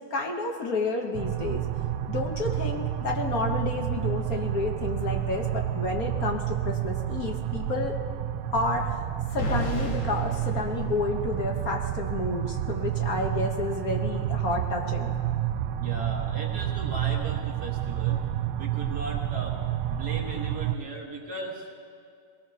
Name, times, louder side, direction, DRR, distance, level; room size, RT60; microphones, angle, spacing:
voice 1, 0.1-1.6 2.1-7.9 8.5-9.0 9.3-15.1, left 3 dB, 50° left, 2 dB, 1.3 m, -30 dB
sound 1, 1.1-20.8, right 12 dB, 85° right, 1.4 m, -30 dB
sound 2, 9.4-11.5, right 1 dB, 75° left, 2.5 m, -33 dB
voice 2, 15.8-18.2 18.6-19.6 19.9-21.7, right 2 dB, 50° right, -1 dB, 1.9 m, -37 dB
22.0 x 18.5 x 2.8 m, 2.3 s
omnidirectional pair, 2.3 m